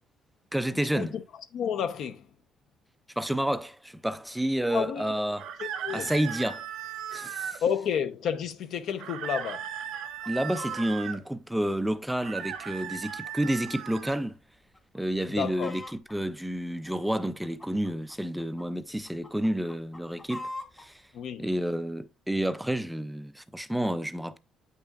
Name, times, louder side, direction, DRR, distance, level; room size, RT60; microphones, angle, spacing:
voice 1, 0.5-1.1 3.2-5.5 5.9-6.7 7.1-7.6 10.3-14.4 14.9-20.5 20.8-21.0 21.4-24.4, right 1 dB, 5° right, 0.3 m, -30 dB
voice 2, 1.5-2.2 4.7-5.2 5.6-6.1 7.6-9.7 15.4-15.7 21.1-21.5, left 8 dB, 60° left, 0.7 m, -30 dB
sound 1, 5.4-7.6 9.0-11.2 12.1-14.2, right 9 dB, 80° right, 0.9 m, -37 dB
Chicken rooster, 10.0-10.9 11.5-13.8 14.1-14.2 14.7-15.0 15.3-16.2 16.8-18.6 19.1-20.9 21.5-21.6, left 2 dB, 15° left, 1.0 m, -43 dB
8.8 x 5.6 x 2.4 m
cardioid pair, 155°, 0 cm